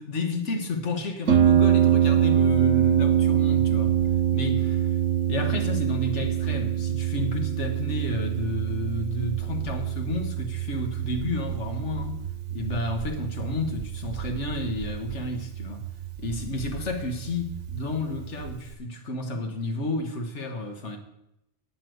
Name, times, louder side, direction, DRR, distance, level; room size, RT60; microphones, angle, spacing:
voice 1, 0.0-4.0 4.3-4.9 5.3-12.2 12.5-15.9 16.2-21.0, left 2 dB, 85° left, 1.8 m, -31 dB
Harp, 1.3-18.7, right 10 dB, 85° right, 1.3 m, -25 dB
8.9 x 8.6 x 7.9 m
omnidirectional pair, 1.2 m